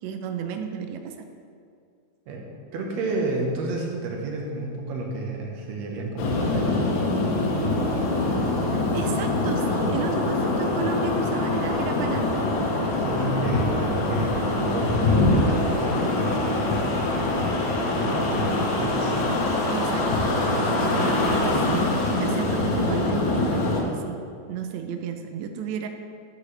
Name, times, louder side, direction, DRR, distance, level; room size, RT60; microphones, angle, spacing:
voice 1, 0.0-1.3 8.7-12.4 19.7-20.1 20.5-24.2 24.5-25.9, right 7 dB, 90° right, 5 dB, 1.5 m, -33 dB
voice 2, 2.3-7.2 13.0-16.7 17.9-19.2 20.4-21.1, right 3 dB, 65° right, 0 dB, 2.1 m, -31 dB
sound 1, 6.2-23.8, left 2 dB, 70° left, 2.3 m, -24 dB
11.5 x 7.5 x 3.3 m, 2.3 s
omnidirectional pair, 3.9 m